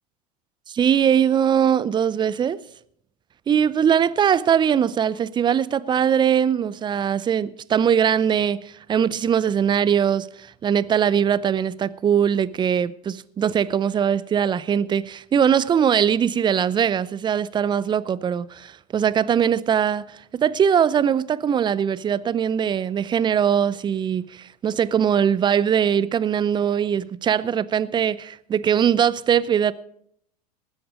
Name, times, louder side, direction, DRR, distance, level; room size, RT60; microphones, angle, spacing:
voice 1, 0.7-2.6 3.5-29.7, right 8 dB, 20° right, 0.6 m, -21 dB
19.5 x 7.9 x 5.1 m
hypercardioid pair, 85°, 21 cm